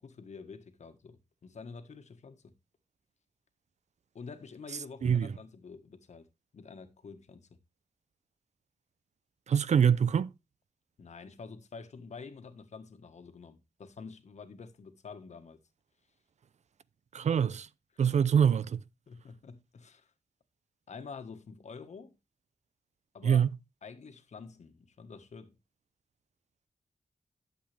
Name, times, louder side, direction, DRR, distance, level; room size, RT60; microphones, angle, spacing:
voice 1, 0.0-2.5 4.1-6.3 6.5-7.5 11.0-15.6 19.1-20.1 20.9-22.2 23.1-23.5 23.8-25.6, left 5 dB, 70° left, 1.5 m, -48 dB
voice 2, 5.0-5.3 9.5-10.3 17.1-17.7 18.0-18.8 23.2-23.5, right 7 dB, 75° right, 0.6 m, -25 dB
12.0 x 7.6 x 3.4 m
cardioid pair, 75°, 12 cm